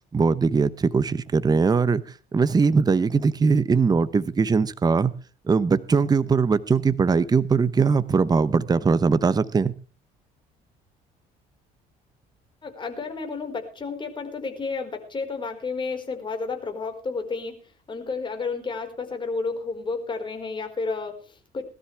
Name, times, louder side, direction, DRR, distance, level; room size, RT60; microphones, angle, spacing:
voice 1, 0.1-2.0 2.3-5.1 5.5-9.7, right 5 dB, 25° right, 0.9 m, -21 dB
voice 2, 12.6-21.6, left 4 dB, 30° left, 4.8 m, -31 dB
21.0 x 13.0 x 3.4 m
cardioid pair, 110°, 17 cm